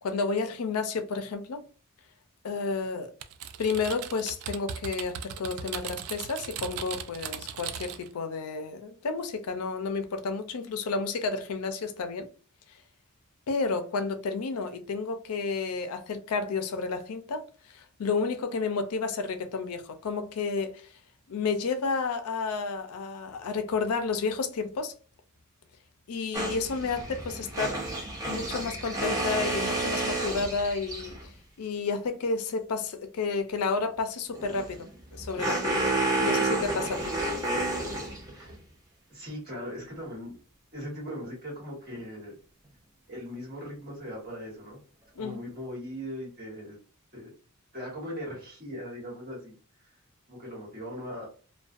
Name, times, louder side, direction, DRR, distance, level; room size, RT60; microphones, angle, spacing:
voice 1, 0.0-1.6 2.4-3.1 3.6-12.3 13.5-20.9 21.3-24.9 26.1-27.8 28.3-31.2 31.6-34.9 35.1-35.9 36.2-37.1 45.2-45.4, left 4 dB, 80° left, 0.4 m, -31 dB
Typing, 3.2-8.1, right 8 dB, 80° right, 0.3 m, -38 dB
sound 1, 26.3-31.3 34.3-38.5, right 2 dB, 15° right, 0.5 m, -30 dB
voice 2, 39.1-40.3 40.7-42.3 43.1-44.8 45.2-46.8 47.1-47.3 47.7-49.5 49.8-49.9 50.3-51.3, equal, 45° right, 1.3 m, -39 dB
2.4 x 2.2 x 2.4 m
head